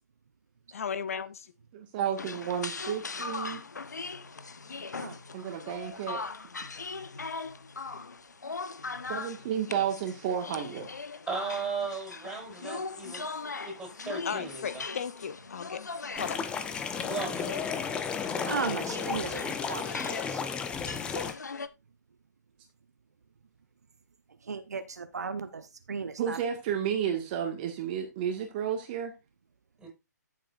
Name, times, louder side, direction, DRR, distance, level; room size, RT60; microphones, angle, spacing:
voice 1, 0.7-1.5 14.2-15.8 16.1-16.4, left 7 dB, 50° left, 0.7 m, -35 dB
voice 2, 1.7-3.6 5.3-6.2 9.1-10.9 26.2-29.1, right 8 dB, 30° right, 1.8 m, -32 dB
sound 1, 2.2-21.7, left 4 dB, 70° left, 1.0 m, -40 dB
voice 3, 11.3-13.3 13.6-14.8 17.0-17.5 29.8-29.9, right 4 dB, 5° right, 5.7 m, -36 dB
sound 2, 16.2-21.3, left 6 dB, 10° left, 0.8 m, -33 dB
voice 4, 18.4-20.4 24.4-26.4, right 5 dB, 65° right, 1.0 m, -36 dB
13.5 x 7.5 x 2.6 m
figure-of-eight pair, 135°, 10 cm